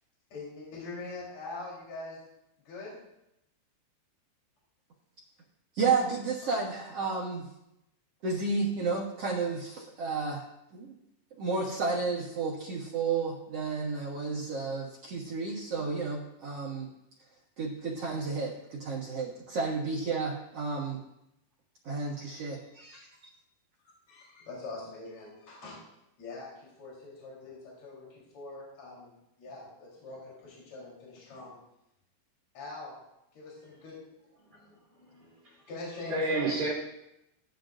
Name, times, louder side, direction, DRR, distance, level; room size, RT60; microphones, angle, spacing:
voice 1, 0.3-2.2 2.6-3.0 22.9-23.0 24.1-25.9 26.2-31.6 32.5-33.0 33.3-33.9 34.5-35.3 35.7-36.5, left 2 dB, 40° left, -5 dB, 4.6 m, -43 dB
voice 2, 5.7-7.5 8.2-10.9 11.4-16.9 17.2-17.3 17.6-21.0 21.8-23.3, right 4 dB, 65° right, -3 dB, 1.4 m, -32 dB
voice 3, 34.9-35.7 36.1-36.7, right 3 dB, 40° right, -7 dB, 3.4 m, -32 dB
17.5 x 11.5 x 2.5 m, 0.84 s
omnidirectional pair, 4.8 m